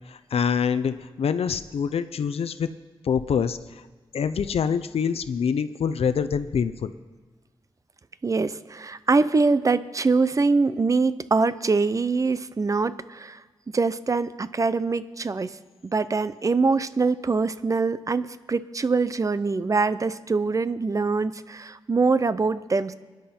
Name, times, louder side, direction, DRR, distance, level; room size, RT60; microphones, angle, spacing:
voice 1, 0.1-2.7 3.0-3.8 4.1-6.9, left 7 dB, 90° left, 12 dB, 0.6 m, -25 dB
voice 2, 8.2-13.4 13.7-15.6 15.8-22.9, right 4 dB, 35° right, 14 dB, 0.5 m, -24 dB
25.5 x 10.5 x 4.4 m, 1.4 s
wide cardioid pair, 140°, 10 cm